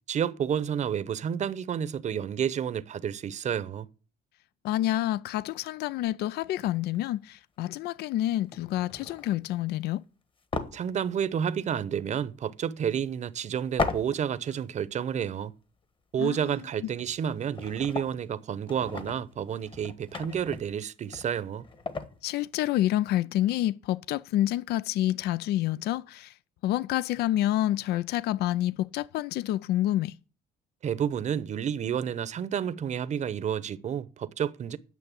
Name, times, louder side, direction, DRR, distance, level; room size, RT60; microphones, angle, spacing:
voice 1, 0.1-3.9 10.7-15.5 16.1-21.6 30.8-34.8, right 8 dB, 45° right, 0.8 m, -30 dB
voice 2, 4.6-10.0 16.2-16.5 16.8-16.9 22.2-26.3 26.6-30.2, left 14 dB, 70° left, 0.5 m, -28 dB
sound 1, 6.7-7.0 7.8-8.0 8.5-9.6 10.5-11.7 12.0-12.1 13.8-14.6 14.9-15.0 16.7-16.8 17.0-18.3 18.7-22.2, left 4 dB, 30° left, 1.4 m, -37 dB
9.2 x 6.6 x 8.3 m
cardioid pair, 110°, 17 cm